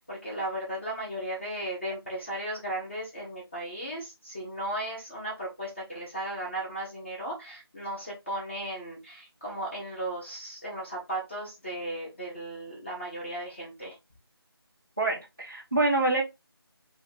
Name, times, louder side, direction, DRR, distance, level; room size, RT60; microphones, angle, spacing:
voice 1, 0.0-14.0, right 1 dB, 30° left, -5 dB, 1.1 m, -36 dB
voice 2, 15.0-16.2, right 2 dB, 10° right, -10 dB, 0.4 m, -26 dB
2.8 x 2.5 x 4.2 m, 0.23 s
figure-of-eight pair, 170°, 13 cm